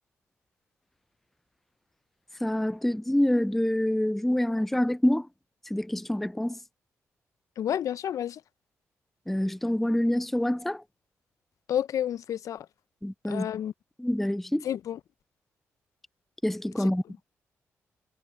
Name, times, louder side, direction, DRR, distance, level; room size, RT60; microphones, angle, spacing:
voice 1, 2.4-5.3 5.7-6.6 9.3-10.8 13.0-13.5 14.0-14.7 16.4-17.0, left 1 dB, 5° left, 0.3 m, -26 dB
voice 2, 7.6-8.4 11.7-12.7 13.3-13.7 14.6-15.0 16.8-16.9, left 10 dB, 70° left, 0.5 m, -30 dB
supercardioid pair, 55°, 6 cm